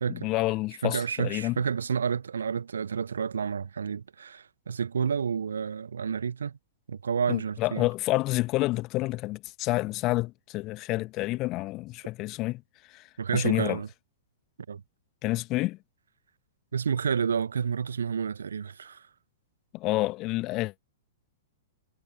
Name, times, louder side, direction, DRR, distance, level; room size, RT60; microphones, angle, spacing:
voice 1, 0.0-1.6 7.3-12.6 12.9-13.0 13.3-13.8 15.2-15.8 19.7-20.8, left 19 dB, 30° left, 2.1 m, -29 dB
voice 2, 0.8-6.6 6.9-7.8 13.2-13.9 14.7-14.8 16.7-19.0, right 6 dB, 65° right, 1.3 m, -30 dB
figure-of-eight pair, 105°, 0 cm